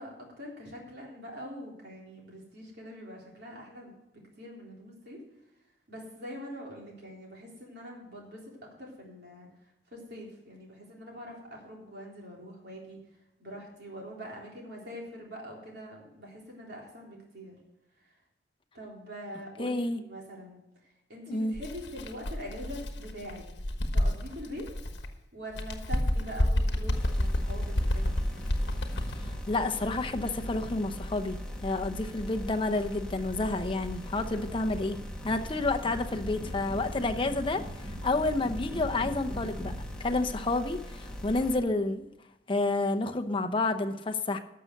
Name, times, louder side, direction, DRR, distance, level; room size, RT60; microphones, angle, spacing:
voice 1, 0.0-5.2 5.9-13.0 13.4-17.6 18.0-18.2 18.7-23.4 23.9-24.7 25.3-28.2, equal, 65° right, -2 dB, 3.6 m, -44 dB
voice 2, 19.6-20.0 21.3-21.5 29.1-35.0 35.2-39.7 40.0-42.1 42.5-44.4, left 2 dB, 30° left, 6 dB, 0.8 m, -30 dB
Bird, 21.5-25.1 25.5-29.3, left 1 dB, 70° left, 1.2 m, -30 dB
sound 1, 26.9-41.6, equal, 5° left, 1.6 m, -39 dB
12.5 x 6.7 x 6.5 m, 0.91 s
head